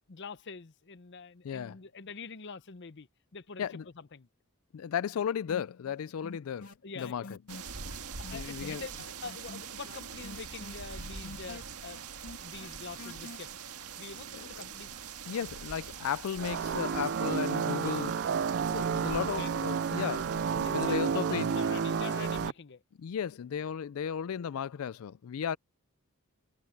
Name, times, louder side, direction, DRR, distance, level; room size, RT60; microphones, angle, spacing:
voice 1, 0.1-3.6 4.0-4.3 6.8-7.3 7.8-13.7 14.0-14.9 18.9-19.5 20.6-22.8, left 5 dB, 50° left, 0.7 m, -45 dB
voice 2, 1.4-1.8 3.6-3.9 4.7-6.7 7.0-7.4 8.3-8.8 14.3-14.5 15.3-18.2 18.7-21.5 23.0-25.6, left 8 dB, 70° left, 0.4 m, -35 dB
sound 1, 5.5-6.0 6.2-13.4, left 2 dB, 85° left, 2.6 m, -46 dB
sound 2, 7.5-22.5, right 6 dB, 85° right, 1.7 m, -44 dB
sound 3, 16.4-22.5, right 6 dB, 50° right, 0.4 m, -31 dB
head